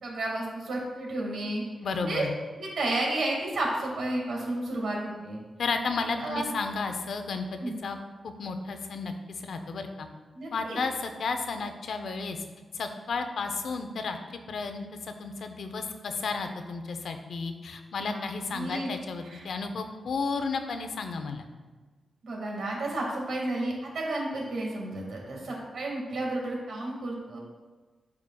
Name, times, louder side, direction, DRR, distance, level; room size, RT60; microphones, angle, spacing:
voice 1, 0.0-1.6 2.0-2.3 2.6-5.4 6.2-6.5 7.6-7.8 10.4-10.8 18.0-18.2 18.5-18.9 19.2-19.4 22.2-27.4, right 2 dB, 70° right, -2 dB, 1.8 m, -32 dB
voice 2, 1.8-2.3 5.6-7.5 7.8-8.0 8.2-10.1 10.5-12.4 12.7-14.2 14.5-21.5, left 4 dB, 70° left, 7 dB, 0.5 m, -33 dB
11.5 x 4.8 x 2.3 m, 1.4 s
wide cardioid pair, 165°, 0 cm